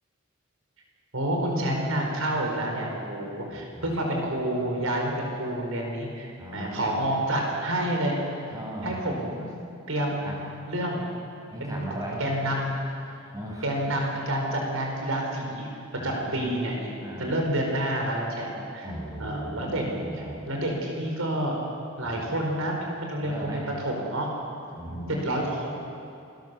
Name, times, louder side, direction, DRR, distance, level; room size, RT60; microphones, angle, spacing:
voice 1, 1.1-8.1 8.8-9.5 9.9-10.3 10.7-11.0 11.6-11.8 12.2-12.7 13.6-15.7 16.0-18.9 19.2-21.6 22.0-24.3 25.2-25.7, right 1 dB, 85° right, 0 dB, 4.8 m, -29 dB
voice 2, 3.5-3.9 6.4-7.1 8.5-9.0 10.2-10.4 11.5-12.2 13.3-13.8 16.0-16.6 17.0-17.3 18.8-20.4 22.0-22.2 23.2-23.6 24.7-25.1, right 1 dB, 15° right, -3 dB, 6.6 m, -37 dB
28.0 x 20.5 x 7.0 m, 2.6 s
head